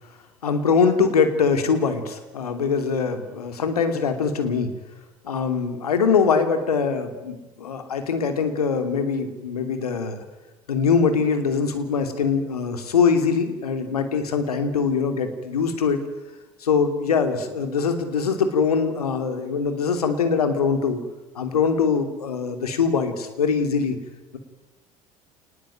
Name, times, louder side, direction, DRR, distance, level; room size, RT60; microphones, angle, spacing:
voice 1, 0.4-4.7 5.2-10.2 10.7-16.0 16.6-21.0 21.3-23.9, left 5 dB, 75° left, 8 dB, 2.9 m, -22 dB
29.0 x 19.5 x 9.2 m, 1.1 s
figure-of-eight pair, 65°, 19 cm